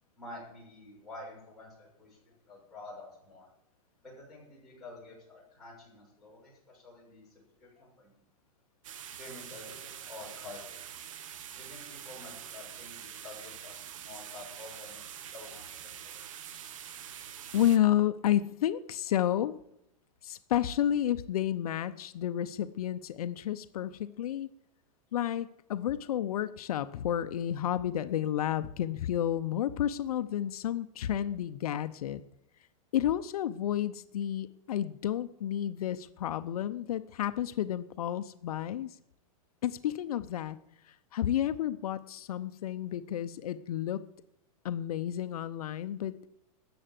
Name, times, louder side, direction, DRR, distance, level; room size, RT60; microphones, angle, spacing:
voice 1, 0.1-2.2 2.5-3.5 4.0-8.2 9.2-10.9 11.6-15.0 15.3-16.2, left 2 dB, ahead, -9 dB, 6.4 m, -49 dB
sound 1, 8.8-17.8, right 9 dB, 60° right, 1.1 m, -45 dB
voice 2, 17.5-19.6 20.2-24.5 25.1-32.2 32.9-39.0 39.6-40.6 40.8-44.0 44.6-46.3, left 11 dB, 75° left, 12 dB, 0.7 m, -31 dB
13.0 x 8.0 x 7.5 m, 0.80 s
supercardioid pair, 165°, 19 cm